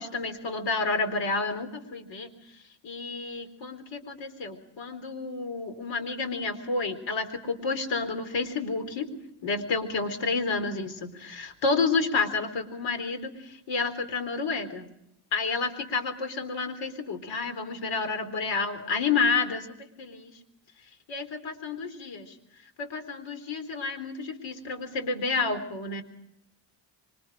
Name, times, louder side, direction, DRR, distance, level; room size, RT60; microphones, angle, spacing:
voice 1, 0.0-2.3 2.8-9.1 9.4-14.9 15.3-20.3 21.1-22.3 22.8-26.0, left 4 dB, 80° left, 8 dB, 4.2 m, -30 dB
26.0 x 25.0 x 5.0 m, 0.76 s
cardioid pair, 135°, 43 cm